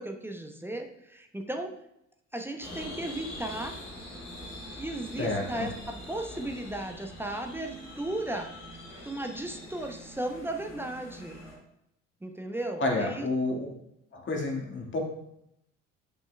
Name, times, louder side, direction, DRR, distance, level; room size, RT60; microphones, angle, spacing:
voice 1, 0.0-1.7 2.3-3.8 4.7-11.4 12.2-13.6, right 1 dB, 5° right, 3 dB, 0.8 m, -36 dB
sound 1, 2.6-11.6, left 1 dB, 70° left, 2.4 m, -44 dB
voice 2, 5.2-5.7 12.8-13.7 14.1-15.0, left 2 dB, 30° left, 1 dB, 1.9 m, -30 dB
10.5 x 6.1 x 2.3 m, 0.79 s
figure-of-eight pair, 55°, 37 cm